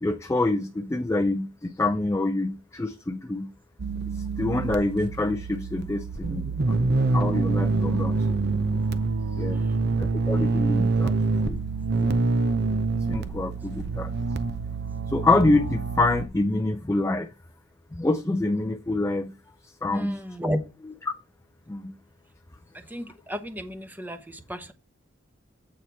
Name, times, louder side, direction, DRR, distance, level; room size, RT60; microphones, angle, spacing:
voice 1, 0.0-3.5 4.1-6.8 7.1-8.5 9.4-9.6 10.0-11.1 11.5-11.6 12.0-12.1 13.1-14.1 15.1-17.3 17.9-19.3 19.6-20.2 21.1-21.2 21.7-21.9, left 2 dB, 15° left, 0.4 m, -26 dB
sound 1, 3.8-16.3, right 3 dB, 55° right, 0.6 m, -26 dB
voice 2, 9.5-10.0 19.9-20.6 22.7-24.7, equal, 10° right, 0.8 m, -33 dB
8.4 x 4.3 x 4.5 m
head